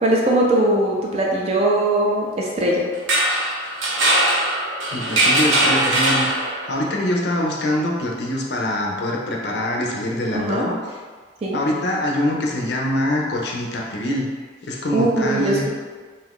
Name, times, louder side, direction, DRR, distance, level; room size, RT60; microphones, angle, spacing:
voice 1, 0.0-2.9 10.3-10.7 11.4-11.6 14.9-15.7, right 1 dB, 30° right, -2 dB, 0.4 m, -20 dB
sound 1, 2.9-6.8, right 1 dB, 90° right, 0.6 m, -20 dB
voice 2, 4.9-11.0 11.5-14.3 14.6-15.7, left 1 dB, 60° left, -1 dB, 0.5 m, -24 dB
2.6 x 2.4 x 3.5 m, 1.5 s
head